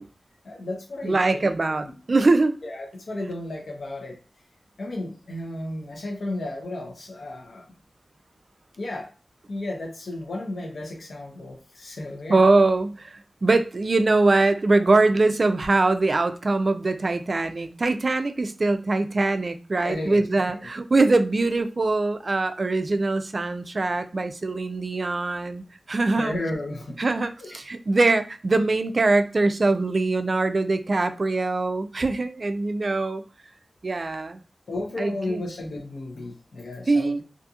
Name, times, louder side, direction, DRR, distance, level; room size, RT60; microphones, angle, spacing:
voice 1, 0.4-2.0 2.6-4.2 4.8-7.6 8.8-9.1 9.5-12.4 19.8-20.6 26.1-27.0 27.5-27.6 34.7-37.2, left 2 dB, 85° left, 0.7 m, -33 dB
voice 2, 1.0-2.6 12.3-26.3 27.0-33.2 33.8-34.4 35.0-35.4 36.9-37.2, right 3 dB, 50° right, 0.3 m, -22 dB
2.7 x 2.5 x 2.3 m
wide cardioid pair, 75°, 0 cm